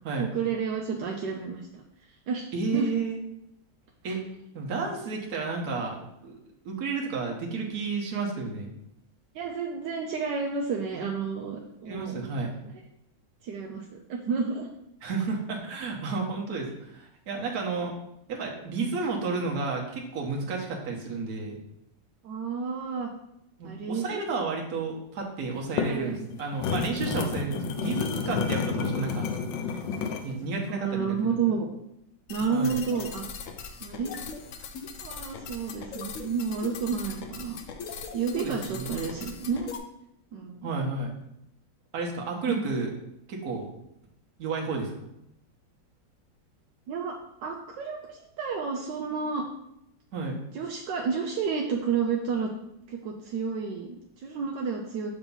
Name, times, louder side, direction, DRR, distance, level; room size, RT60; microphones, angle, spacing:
voice 1, 0.2-2.9 4.1-4.2 9.3-12.2 13.4-14.7 22.2-23.1 23.6-24.3 25.9-26.3 28.8-29.5 30.7-31.7 32.3-33.2 33.8-34.2 35.0-37.6 37.9-39.7 40.3-40.7 42.5-42.7 46.9-49.4 50.5-52.5 52.9-55.1, right 5 dB, 80° right, 0 dB, 1.2 m, -31 dB
voice 2, 2.5-3.2 4.0-4.2 4.5-6.0 6.2-6.4 6.6-8.7 11.8-12.6 15.0-17.9 18.3-21.6 23.6-29.2 30.2-31.2 32.5-32.8 38.3-39.0 40.6-41.1 41.9-42.9 43.3-43.7 44.4-44.9 50.1-50.4, right 4 dB, 60° right, 0 dB, 1.5 m, -31 dB
sound 1, 25.5-30.3, left 6 dB, 85° left, 1.3 m, -30 dB
sound 2, 32.3-39.8, left 5 dB, 70° left, 0.8 m, -40 dB
6.8 x 2.9 x 5.4 m, 0.81 s
omnidirectional pair, 2.0 m